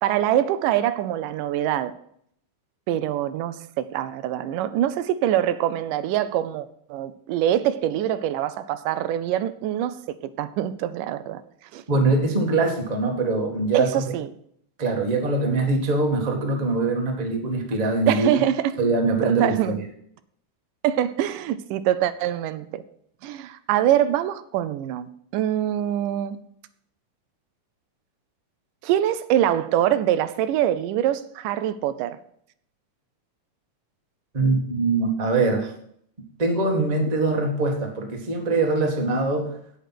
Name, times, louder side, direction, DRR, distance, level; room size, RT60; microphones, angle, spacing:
voice 1, 0.0-2.0 2.9-11.4 11.7-11.8 13.7-14.3 18.1-18.7 19.2-19.8 20.8-22.8 23.2-26.4 28.8-32.2, right 11 dB, 85° right, 2.3 m, -24 dB
voice 2, 11.9-14.0 14.8-18.3 18.8-19.8 34.3-35.7 36.4-39.5, right 3 dB, 20° right, 1.1 m, -23 dB
8.8 x 8.4 x 5.9 m
omnidirectional pair, 3.7 m